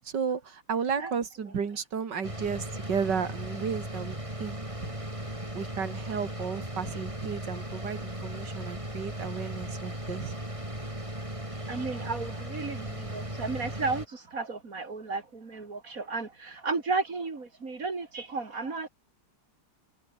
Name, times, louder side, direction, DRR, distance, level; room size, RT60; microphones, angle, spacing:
voice 1, 0.0-4.6 4.8-4.9 5.5-10.3, right 6 dB, 80° right, 2.8 m, -33 dB
sound 1, 2.2-14.0, right 1 dB, 15° right, 5.8 m, -37 dB
voice 2, 11.6-18.9, right 4 dB, 50° right, 3.1 m, -33 dB
omnidirectional pair, 1.9 m